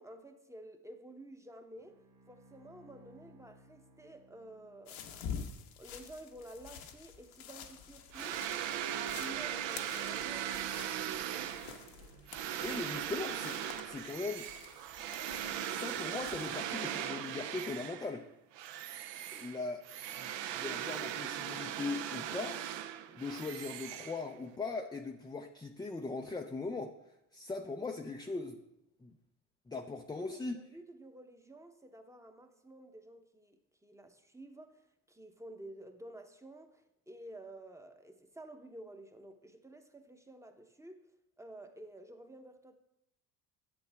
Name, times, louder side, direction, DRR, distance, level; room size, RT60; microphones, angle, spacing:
voice 1, 0.0-2.0 2.3-5.3 5.8-8.5 8.9-11.1 30.2-41.0 41.4-42.8, right 1 dB, 5° right, 0.9 m, -51 dB
Bowed string instrument, 1.7-5.3, equal, 85° right, 1.7 m, -61 dB
sound 1, 4.9-16.8, left 7 dB, 70° left, 1.2 m, -48 dB
sound 2, 8.1-18.2 18.5-24.6, right 10 dB, 60° right, 0.8 m, -39 dB
voice 2, 12.6-14.5 15.6-18.3 19.3-19.8 20.2-22.6 23.1-27.0 27.3-28.6 29.0-29.1 29.7-30.6, left 3 dB, 10° left, 0.5 m, -40 dB
10.5 x 7.8 x 3.5 m
supercardioid pair, 85°, 49 cm